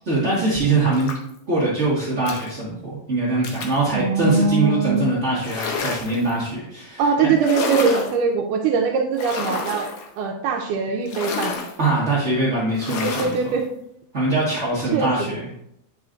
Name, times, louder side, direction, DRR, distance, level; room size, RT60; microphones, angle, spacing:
voice 1, 0.0-1.1 1.5-7.3 11.8-13.3 14.1-15.6, right 2 dB, 45° right, -7 dB, 0.9 m, -22 dB
sound 1, 0.9-1.4 2.3-2.5 3.4-3.8 5.4-6.3 7.4-8.2 9.2-10.1 11.1-11.8 12.7-13.4, left 4 dB, 70° left, 2.0 m, -29 dB
voice 2, 3.9-5.1 7.0-9.9 10.2-11.6 13.0-13.7 14.9-15.4, right 5 dB, 80° right, 2 dB, 2.1 m, -22 dB
9.4 x 4.9 x 2.5 m, 0.74 s
omnidirectional pair, 3.7 m